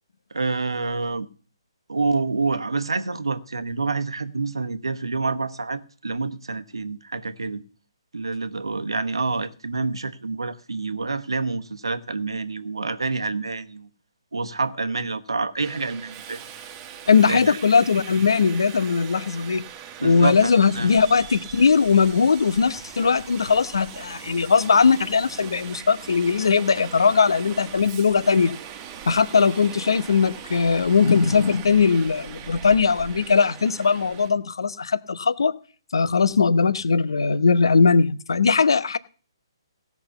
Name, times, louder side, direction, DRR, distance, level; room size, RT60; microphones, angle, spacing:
voice 1, 0.3-1.3 1.9-7.6 8.1-13.9 14.3-16.4 17.3-17.6 20.0-20.4 20.7-20.9, right 3 dB, 80° right, 1.0 m, -27 dB
Subway metro underground, 15.6-34.3, right 8 dB, 25° right, 1.3 m, -40 dB
voice 2, 17.1-19.6 20.0-28.6 29.1-35.5 35.9-39.0, left 5 dB, 70° left, 0.8 m, -19 dB
16.0 x 6.0 x 6.9 m
figure-of-eight pair, 140°, 3 cm